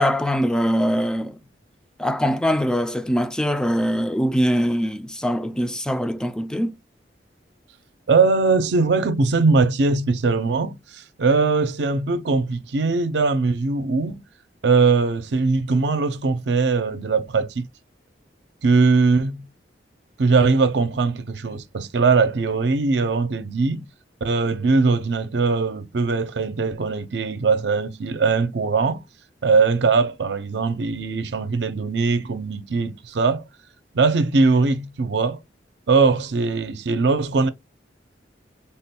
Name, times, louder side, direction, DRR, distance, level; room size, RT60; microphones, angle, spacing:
voice 1, 0.0-1.4 2.0-6.8, equal, 5° left, 0.3 m, -22 dB
voice 2, 8.1-14.2 14.6-17.7 18.6-19.5 20.2-23.9 24.2-29.0 29.4-33.4 33.9-35.4 35.9-37.5, right 4 dB, 70° right, 0.5 m, -20 dB
3.5 x 2.2 x 4.2 m
head